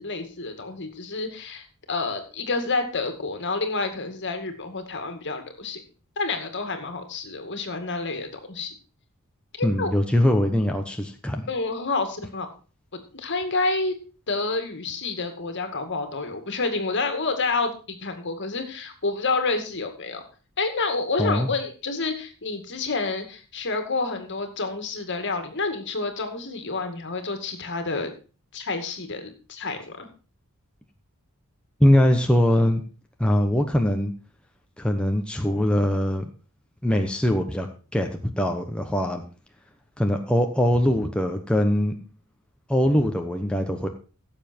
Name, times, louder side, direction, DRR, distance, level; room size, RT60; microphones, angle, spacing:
voice 1, 0.0-5.8 6.2-8.7 9.6-9.9 11.5-12.5 13.1-14.0 14.3-20.2 20.6-28.1 28.5-30.1, left 3 dB, 55° left, 7 dB, 2.2 m, -29 dB
voice 2, 9.6-11.5 21.2-21.5 31.8-32.8 33.2-34.1 34.8-36.3 36.8-39.2 40.0-41.9 42.7-43.9, left 1 dB, 5° left, 3 dB, 1.1 m, -22 dB
16.0 x 7.4 x 4.5 m, 0.35 s
head